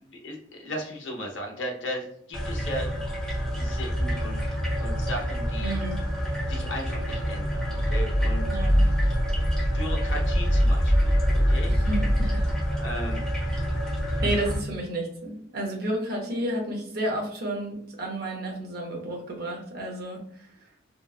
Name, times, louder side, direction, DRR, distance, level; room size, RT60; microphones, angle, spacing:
voice 1, 0.0-2.9 3.6-4.4 4.8-5.7 6.5-8.9 9.5-11.7 12.8-13.2, equal, 80° left, 1 dB, 0.9 m, -36 dB
sound 1, 2.3-14.6, equal, 5° left, 0.8 m, -25 dB
voice 2, 5.6-6.0 8.5-8.8 11.7-12.5 14.2-20.7, right 1 dB, 55° right, 1 dB, 0.8 m, -31 dB
2.9 x 2.3 x 2.4 m, 0.65 s
head